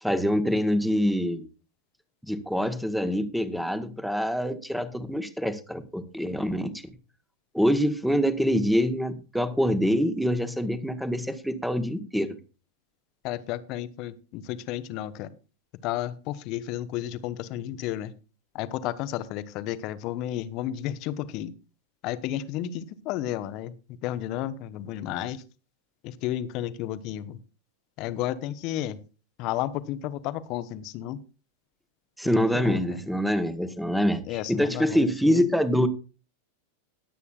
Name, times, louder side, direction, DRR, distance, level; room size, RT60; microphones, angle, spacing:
voice 1, 0.0-1.5 2.2-6.7 7.5-12.3 32.2-34.2 34.5-35.9, equal, ahead, 12 dB, 1.2 m, -25 dB
voice 2, 13.2-15.3 15.8-18.1 18.5-21.5 22.0-23.7 24.0-25.4 26.0-27.4 28.0-29.0 29.4-31.2 32.2-33.0 34.3-35.5, left 12 dB, 40° left, 14 dB, 0.9 m, -32 dB
20.5 x 8.3 x 2.4 m, 0.33 s
figure-of-eight pair, 90°, 0 cm